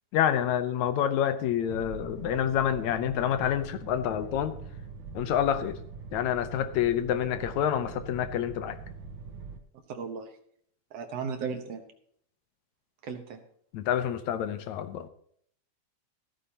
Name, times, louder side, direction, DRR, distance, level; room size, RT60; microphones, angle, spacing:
voice 1, 0.1-4.5 5.1-5.8 6.1-8.8 13.7-15.1, left 10 dB, 75° left, 2.1 m, -28 dB
sound 1, 1.7-9.6, right 5 dB, 80° right, 2.7 m, -43 dB
voice 2, 9.9-10.3 10.9-11.8 13.0-13.4, right 6 dB, 65° right, 2.1 m, -35 dB
15.5 x 13.5 x 2.9 m
omnidirectional pair, 3.3 m